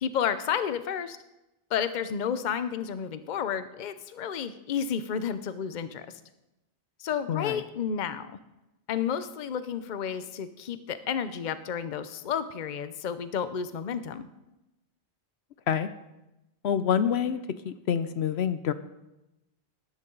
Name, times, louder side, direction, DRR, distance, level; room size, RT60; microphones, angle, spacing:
voice 1, 0.0-1.2 1.7-6.1 7.0-8.4 8.9-14.3, left 8 dB, 50° left, 12 dB, 0.7 m, -31 dB
voice 2, 7.3-7.6 15.7-15.9 16.6-17.4 17.6-18.7, left 8 dB, 75° left, 12 dB, 0.9 m, -27 dB
19.5 x 11.0 x 3.9 m, 0.96 s
omnidirectional pair, 1.1 m